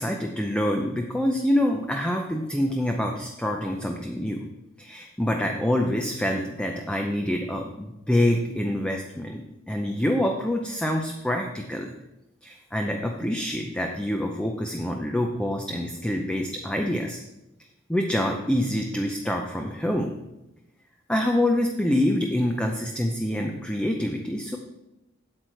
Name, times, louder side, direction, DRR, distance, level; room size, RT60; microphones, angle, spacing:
voice 1, 0.0-4.4 4.8-9.4 9.7-11.9 12.4-17.2 17.9-20.1 21.1-24.6, left 1 dB, 5° left, 2 dB, 0.6 m, -26 dB
8.6 x 8.0 x 4.5 m, 0.94 s
head